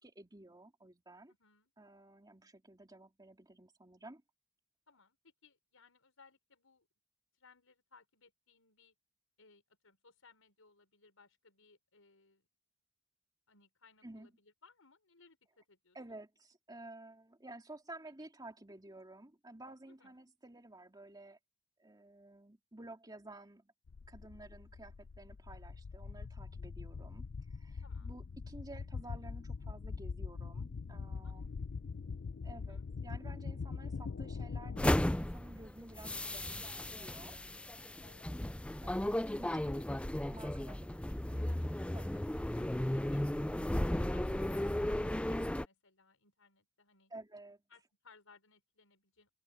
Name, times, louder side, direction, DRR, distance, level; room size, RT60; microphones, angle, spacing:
voice 1, 0.0-1.3 1.8-4.2 14.0-14.3 15.9-21.4 21.8-23.7 24.1-31.5 32.4-37.4 39.0-39.7 40.3-41.5 41.9-42.2 47.1-47.6, right 2 dB, 20° right, 2.8 m, -53 dB
voice 2, 1.4-1.7 4.9-6.9 7.3-8.9 9.4-12.4 13.5-16.0 20.0-20.2 27.8-28.2 31.2-31.5 32.5-32.8 38.0-38.9 39.6-39.9 42.6-42.7 43.1-43.2 44.1-47.1 47.7-49.3, left 4 dB, 80° left, 6.1 m, -64 dB
sound 1, 23.9-34.9, left 5 dB, 60° left, 0.5 m, -43 dB
sound 2, 34.8-45.6, left 1 dB, 5° left, 0.4 m, -35 dB
head